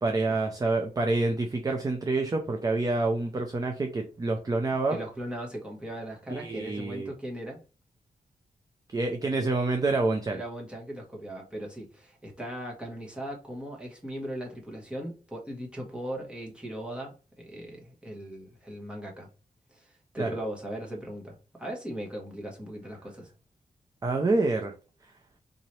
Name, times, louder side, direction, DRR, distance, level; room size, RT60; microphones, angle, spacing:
voice 1, 0.0-5.0 6.3-7.1 8.9-10.4 20.2-20.4 24.0-24.7, right 3 dB, 25° right, 0.5 m, -27 dB
voice 2, 4.9-7.6 10.3-19.3 19.7-23.3, right 1 dB, 5° right, 1.3 m, -38 dB
3.9 x 2.9 x 3.1 m
wide cardioid pair, 135°, 15 cm